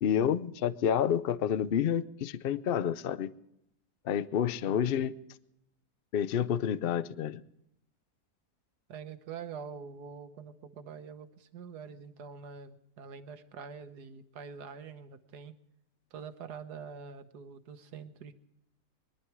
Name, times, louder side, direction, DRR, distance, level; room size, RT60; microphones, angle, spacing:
voice 1, 0.0-3.3 4.1-5.1 6.1-7.4, left 9 dB, 60° left, 16 dB, 0.6 m, -29 dB
voice 2, 4.6-5.0 8.9-15.6 16.1-18.3, right 6 dB, 80° right, 9 dB, 1.6 m, -45 dB
22.5 x 11.5 x 4.8 m, 0.81 s
omnidirectional pair, 1.7 m